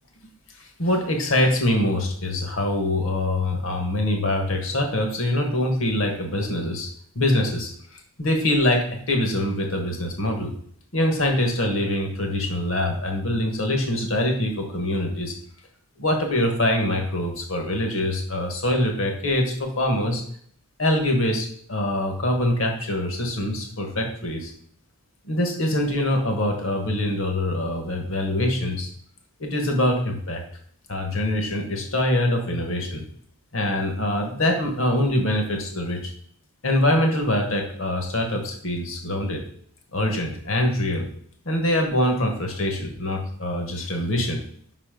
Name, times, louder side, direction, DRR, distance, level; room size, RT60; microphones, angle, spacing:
voice 1, 0.6-6.9 7.1-10.5 10.9-15.3 16.0-20.2 20.8-24.5 25.3-28.9 29.4-30.4 30.9-33.0 33.5-36.1 36.6-39.4 39.9-41.1 41.4-44.4, left 1 dB, 60° left, 3 dB, 1.3 m, -24 dB
5.5 x 4.1 x 5.1 m, 0.62 s
head